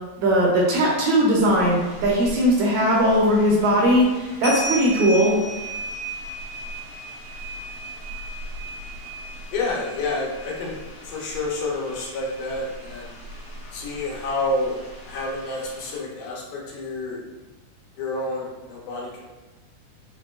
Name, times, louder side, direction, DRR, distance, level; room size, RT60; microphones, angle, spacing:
voice 1, 0.2-5.4, equal, 75° right, -3 dB, 1.9 m, -19 dB
sound 1, 1.4-16.0, right 1 dB, 55° left, 1.9 m, -36 dB
voice 2, 9.5-13.1 13.7-14.8 15.0-17.2 18.0-19.3, left 2 dB, 85° left, -3 dB, 2.3 m, -29 dB
5.2 x 2.2 x 2.3 m, 1.1 s
omnidirectional pair, 3.6 m